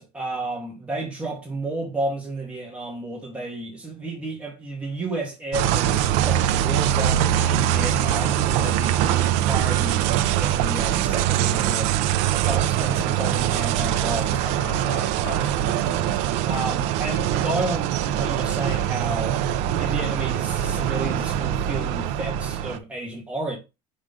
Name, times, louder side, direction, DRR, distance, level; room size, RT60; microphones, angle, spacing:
voice 1, 0.0-10.0 10.3-11.9 12.3-14.4 16.4-19.4 19.8-23.6, right 2 dB, 10° right, 2.9 m, -32 dB
sound 1, 5.5-22.8, right 11 dB, 60° right, 0.7 m, -23 dB
voice 2, 12.8-13.1 14.4-16.2, left 4 dB, 60° left, 3.5 m, -39 dB
6.4 x 5.0 x 3.8 m
cardioid pair, 175°, 13 cm